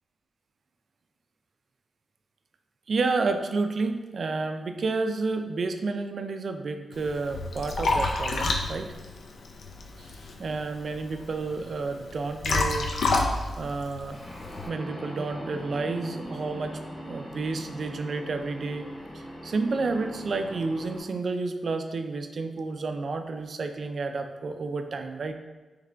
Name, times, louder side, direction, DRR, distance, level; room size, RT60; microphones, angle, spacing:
voice 1, 2.9-8.9 10.0-10.1 10.4-13.3 13.6-14.2 14.7-18.9 19.1-25.3, right 3 dB, 50° right, 7 dB, 0.3 m, -30 dB
Liquid, 6.9-14.7, left 3 dB, 75° left, 0.4 m, -30 dB
sound 1, 14.1-21.0, equal, 20° left, 0.8 m, -40 dB
3.7 x 3.2 x 3.3 m, 1.2 s
wide cardioid pair, 155°, 0 cm